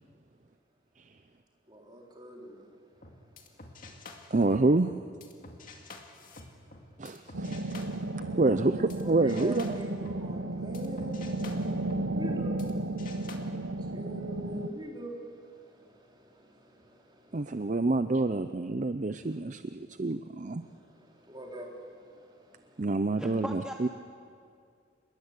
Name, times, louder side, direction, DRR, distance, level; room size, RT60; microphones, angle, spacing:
voice 1, 1.7-2.7 8.2-17.6 19.2-19.4 20.6-22.8, equal, 25° right, -1 dB, 3.7 m, -44 dB
sound 1, 3.0-9.0 9.3-12.7 13.0-13.4, left 3 dB, 45° left, 2.2 m, -49 dB
voice 2, 4.3-4.9 7.0-7.9 8.4-9.6 17.3-20.6 22.8-23.9, right 2 dB, 40° right, 10 dB, 0.5 m, -28 dB
sound 2, 7.3-14.7, right 2 dB, 90° right, 0.9 m, -34 dB
voice 3, 23.2-23.9, equal, 5° right, 2 dB, 1.1 m, -38 dB
27.5 x 21.0 x 8.2 m, 2.3 s
head